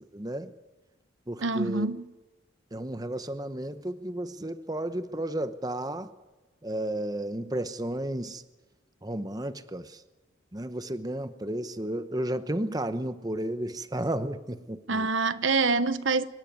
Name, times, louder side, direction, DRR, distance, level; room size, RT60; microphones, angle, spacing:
voice 1, 0.1-0.5 1.3-1.9 2.7-6.1 6.6-8.4 9.0-10.0 10.5-15.1, right 1 dB, 20° right, 0.9 m, -33 dB
voice 2, 1.4-2.1 14.9-16.2, right 4 dB, 75° right, 0.9 m, -26 dB
26.0 x 12.5 x 9.4 m
head